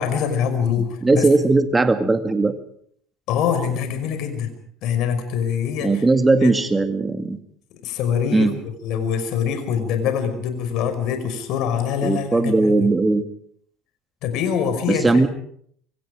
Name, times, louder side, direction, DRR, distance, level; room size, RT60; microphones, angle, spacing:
voice 1, 0.0-1.3 3.3-4.5 4.8-6.0 6.4-6.5 7.8-12.9 14.2-15.3, left 7 dB, 60° left, 8 dB, 5.3 m, -24 dB
voice 2, 1.0-2.5 5.8-7.4 8.3-8.5 12.0-13.3 14.9-15.3, right 3 dB, 15° right, 8 dB, 2.1 m, -18 dB
25.5 x 24.0 x 5.0 m, 0.64 s
hypercardioid pair, 70°, 0 cm